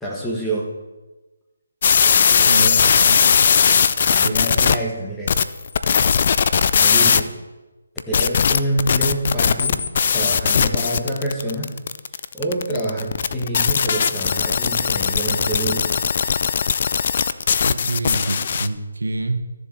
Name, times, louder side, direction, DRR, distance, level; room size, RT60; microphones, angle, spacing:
voice 1, 0.0-0.7 2.3-2.8 3.9-5.4 6.8-7.3 8.1-9.8 10.1-11.7 12.3-16.1, right 1 dB, 5° left, -5 dB, 1.5 m, -27 dB
sound 1, 1.8-4.8 5.3-7.2 8.0-18.7, left 6 dB, 45° left, 0.4 m, -18 dB
voice 2, 2.5-3.5 4.2-4.7 17.6-19.4, right 2 dB, 85° right, 5 dB, 1.1 m, -27 dB
14.0 x 7.1 x 4.3 m, 1.2 s
figure-of-eight pair, 160°, 0 cm